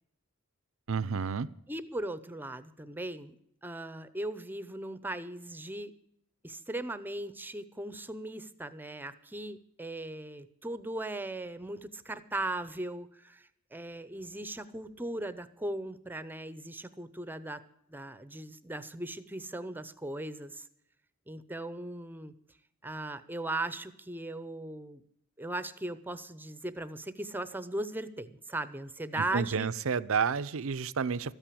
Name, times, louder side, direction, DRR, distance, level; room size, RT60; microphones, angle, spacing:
voice 1, 0.9-1.5 29.3-31.3, right 6 dB, 70° right, 17 dB, 0.6 m, -30 dB
voice 2, 1.7-3.3 3.6-5.9 6.4-20.6 21.3-22.3 22.8-25.0 25.4-29.7, right 1 dB, 10° right, 13 dB, 0.7 m, -38 dB
13.5 x 9.0 x 8.5 m, 0.74 s
head